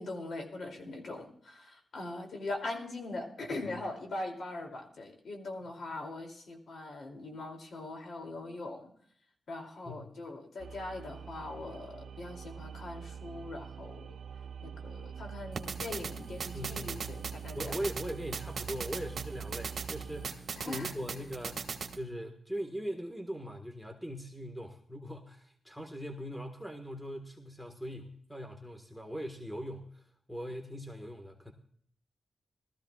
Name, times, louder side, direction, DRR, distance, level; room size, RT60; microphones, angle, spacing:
voice 1, 0.0-8.9 9.5-14.2 14.6-17.7 20.6-20.9, left 2 dB, 70° left, 3 dB, 2.7 m, -41 dB
sound 1, 10.6-20.3, right 7 dB, 85° right, 0.8 m, -45 dB
sound 2, 15.5-22.0, right 5 dB, 65° right, 1.4 m, -40 dB
voice 2, 16.5-17.1 17.5-21.7 22.0-31.5, equal, 5° left, 4 dB, 1.5 m, -41 dB
20.0 x 14.0 x 2.4 m, 0.62 s
wide cardioid pair, 100°, 0 cm